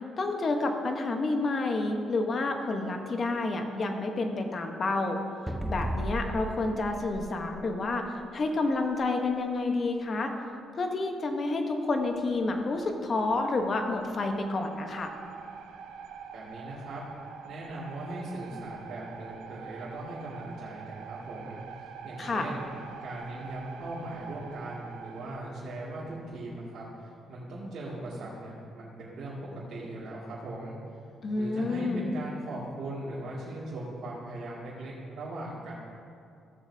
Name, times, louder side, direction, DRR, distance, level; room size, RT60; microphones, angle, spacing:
voice 1, 0.2-5.2 5.7-10.3 10.8-15.1 22.2-22.4 31.2-32.1, left 3 dB, 40° left, 4 dB, 1.1 m, -29 dB
sound 1, 5.5-8.2, equal, 5° right, 0.5 m, -35 dB
sound 2, 11.9-25.4, right 6 dB, 90° right, 0.7 m, -46 dB
voice 2, 16.3-17.0 17.4-26.8 27.3-30.8 31.4-35.7, right 1 dB, 65° right, -9 dB, 2.3 m, -39 dB
16.0 x 7.2 x 2.8 m, 2.5 s
cardioid pair, 90°, 0 cm